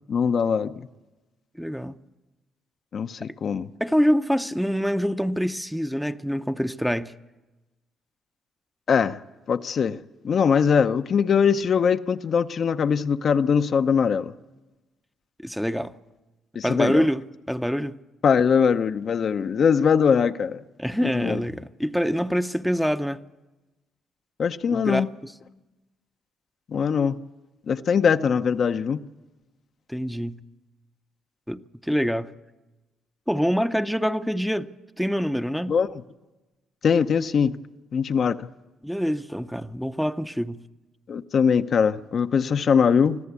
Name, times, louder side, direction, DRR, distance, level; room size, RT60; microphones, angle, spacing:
voice 1, 0.1-0.9 2.9-3.7 8.9-9.2 9.5-10.0 10.2-14.3 16.5-17.0 18.2-20.6 21.0-21.4 24.4-25.1 26.7-27.2 27.7-29.0 35.7-36.0 36.8-37.6 37.9-38.5 41.1-43.2, left 6 dB, 55° left, 0.7 m, -22 dB
voice 2, 1.6-1.9 3.8-7.1 15.4-15.9 16.6-18.0 20.8-23.2 24.7-25.1 29.9-30.4 31.5-32.3 33.3-34.7 35.0-35.8 38.8-40.6, equal, ahead, 0.7 m, -25 dB
25.0 x 14.0 x 8.3 m
supercardioid pair, 70°, 0 cm